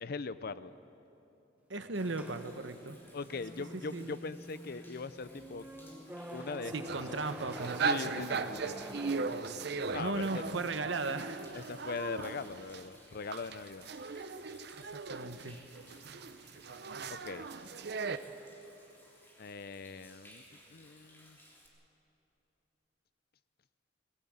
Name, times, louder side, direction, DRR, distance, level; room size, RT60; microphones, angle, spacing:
voice 1, 0.0-0.7 3.1-5.7 6.3-6.7 7.1-7.3 7.8-8.7 9.9-10.5 11.5-13.9 17.2-17.5 19.4-20.4 20.7-21.4, left 4 dB, 55° left, 15 dB, 0.6 m, -40 dB
voice 2, 1.7-3.0 3.7-4.2 6.7-8.2 10.0-11.4 14.8-15.6, right 3 dB, 80° right, 9 dB, 1.1 m, -37 dB
Human voice / Rain / Stream, 1.9-21.7, equal, 10° left, 3.3 m, -60 dB
sound 1, 2.0-10.0, equal, 10° right, 1.3 m, -47 dB
sound 2, 6.8-12.8 13.3-18.2, right 4 dB, 60° right, 0.8 m, -38 dB
19.5 x 18.0 x 8.8 m, 3.0 s
head